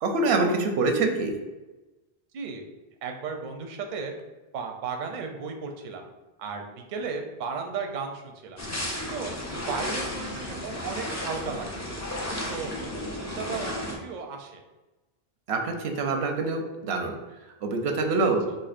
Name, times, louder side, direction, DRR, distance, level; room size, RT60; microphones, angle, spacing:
voice 1, 0.0-1.3 15.5-17.2 17.6-18.5, right 3 dB, 85° right, 4 dB, 0.8 m, -25 dB
voice 2, 3.0-4.1 4.5-6.0 6.4-8.6 9.1-9.3 9.7-12.1 12.5-14.6, right 5 dB, 60° right, 3 dB, 0.6 m, -35 dB
sound 1, 8.6-14.0, left 1 dB, 25° left, 0.3 m, -33 dB
4.4 x 2.6 x 2.4 m, 1.1 s
omnidirectional pair, 1.0 m